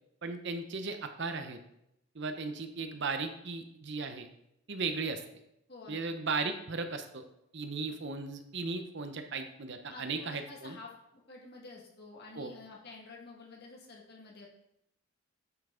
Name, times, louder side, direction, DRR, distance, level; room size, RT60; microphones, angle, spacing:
voice 1, 0.2-1.6 2.1-4.3 4.7-5.2 5.9-7.2 7.5-10.8 12.3-12.5, right 4 dB, 55° right, 7 dB, 0.7 m, -36 dB
voice 2, 5.7-6.0 9.9-14.5, left 3 dB, 45° left, -2 dB, 1.8 m, -50 dB
9.0 x 5.7 x 3.8 m, 0.79 s
head